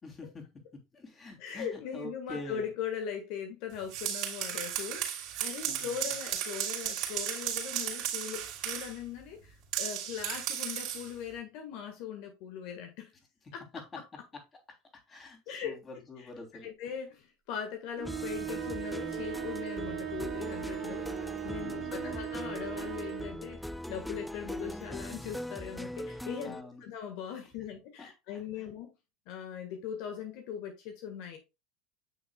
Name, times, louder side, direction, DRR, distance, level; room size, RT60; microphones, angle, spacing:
voice 1, 0.0-2.7 5.7-6.1 13.7-13.8 14.7-16.7 21.6-22.3 26.4-26.8 28.0-28.1 28.6-28.7, left 2 dB, 25° left, 3.1 m, -46 dB
voice 2, 1.4-13.1 13.5-13.6 15.5-15.8 16.6-21.1 21.4-26.6 26.8-28.9 29.3-31.4, left 8 dB, 65° left, 1.5 m, -40 dB
sound 1, 3.7-9.0 9.7-11.1, right 10 dB, 60° right, 2.9 m, -35 dB
sound 2, 18.0-26.6, left 1 dB, 5° left, 0.4 m, -40 dB
sound 3, 18.0-23.4, right 12 dB, 45° right, 1.3 m, -38 dB
8.6 x 6.5 x 2.3 m
supercardioid pair, 105°, 0 cm